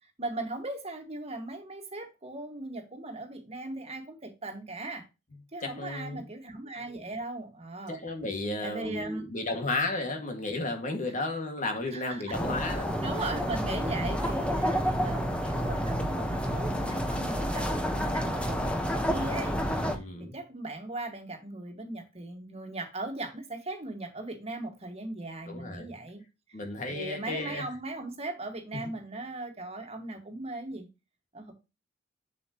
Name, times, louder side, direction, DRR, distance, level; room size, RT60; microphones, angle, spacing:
voice 1, 0.2-5.0 5.5-8.0 8.6-9.2 11.9-12.4 13.0-19.6 19.9-26.2 26.9-30.9 31.3-31.5, right 2 dB, 35° right, 2.0 m, -38 dB
voice 2, 5.6-6.2 7.9-12.9 14.0-14.1 19.9-20.3 25.5-25.9 26.5-27.6 28.8-28.9, left 2 dB, 45° left, 2.2 m, -33 dB
sound 1, 12.3-20.0, equal, 5° left, 1.4 m, -29 dB
7.6 x 7.4 x 3.1 m
head